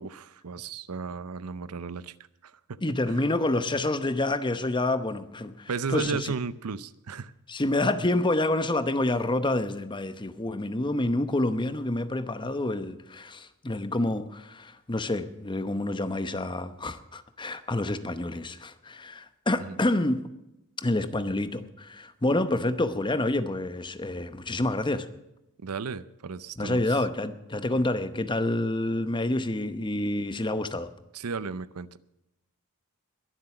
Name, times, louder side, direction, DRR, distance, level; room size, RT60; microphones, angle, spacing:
voice 1, 0.0-2.1 2.4-2.8 3.1-3.2 5.7-7.3 19.6-19.8 25.6-27.0 31.1-32.0, right 5 dB, 85° right, 17 dB, 0.6 m, -34 dB
voice 2, 2.8-6.3 7.5-20.3 20.8-25.1 26.6-30.9, left 2 dB, 20° left, 11 dB, 0.8 m, -28 dB
21.5 x 7.7 x 6.0 m, 0.91 s
head